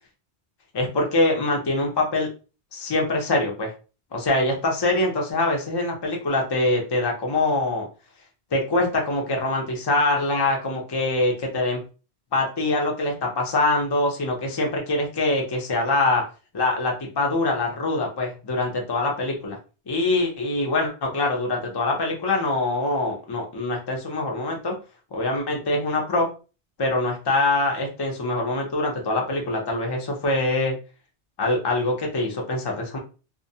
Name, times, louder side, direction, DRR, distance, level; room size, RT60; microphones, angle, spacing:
voice 1, 0.7-2.3 2.7-3.7 4.1-7.9 8.5-11.8 12.3-16.2 16.5-19.6 19.9-24.8 25.1-26.3 26.8-30.8 31.4-33.0, left 2 dB, 30° left, 1 dB, 0.5 m, -24 dB
2.4 x 2.1 x 2.7 m, 0.34 s
omnidirectional pair, 1.1 m